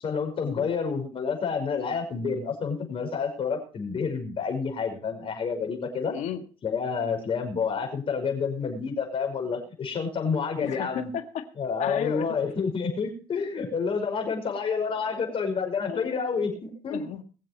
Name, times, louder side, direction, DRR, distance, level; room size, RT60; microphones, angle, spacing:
voice 1, 0.0-6.1 6.6-11.1 11.6-17.0, left 5 dB, 45° left, 4 dB, 5.9 m, -29 dB
voice 2, 6.1-6.4 10.6-11.4 11.8-12.3 15.1-15.4 15.9-16.6 16.9-17.2, left 10 dB, 65° left, 8 dB, 1.8 m, -35 dB
22.0 x 7.6 x 4.6 m, 0.36 s
supercardioid pair, 85°, 13 cm